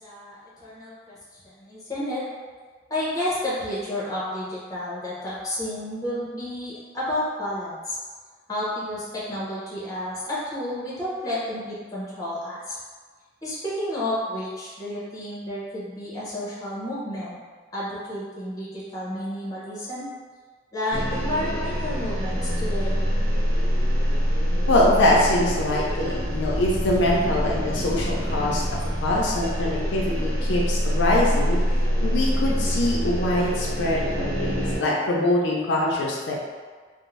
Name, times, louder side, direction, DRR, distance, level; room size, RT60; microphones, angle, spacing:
voice 1, 0.0-2.2 2.9-8.0 8.5-12.8 13.4-17.4 17.7-20.1 20.7-23.1, left 1 dB, 20° left, -8 dB, 0.7 m, -31 dB
sound 1, 20.9-34.8, equal, 65° right, 0.8 m, -25 dB
voice 2, 24.7-28.6 29.0-31.6 32.0-36.4, left 1 dB, 80° left, -3 dB, 0.4 m, -23 dB
2.6 x 2.0 x 3.0 m, 1.5 s
head